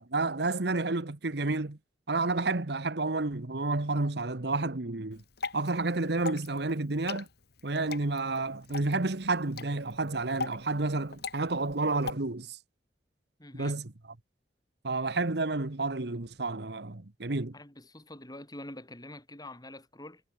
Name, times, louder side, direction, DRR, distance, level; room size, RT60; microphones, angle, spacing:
voice 1, 0.0-1.8 2.1-5.2 5.5-7.3 7.6-12.6 13.6-13.9 14.8-17.5, right 3 dB, 65° right, 1.3 m, -30 dB
Water / Drip, 5.1-12.1, left 4 dB, 65° left, 2.5 m, -41 dB
voice 2, 13.4-13.8 17.5-20.2, left 1 dB, 20° left, 7.2 m, -45 dB
head